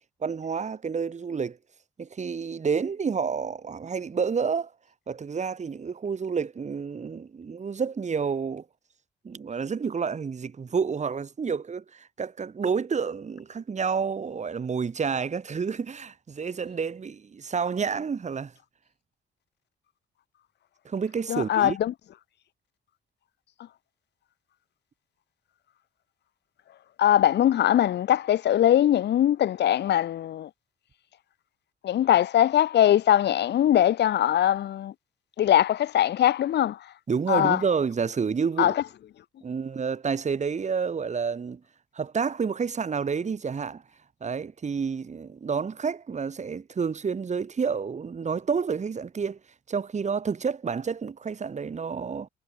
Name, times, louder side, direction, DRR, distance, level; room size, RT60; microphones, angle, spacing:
voice 1, 0.2-1.6 2.0-4.7 5.1-8.6 9.2-18.5 20.8-21.8 37.1-38.8 39.4-41.6 41.9-43.8 44.2-49.4 49.7-52.3, right 6 dB, 35° right, 2.2 m, -29 dB
voice 2, 21.3-21.9 27.0-30.5 31.8-34.9 35.4-36.8 37.3-37.6 38.6-38.8, left 11 dB, 60° left, 0.7 m, -21 dB
cardioid pair, 90°, 20 cm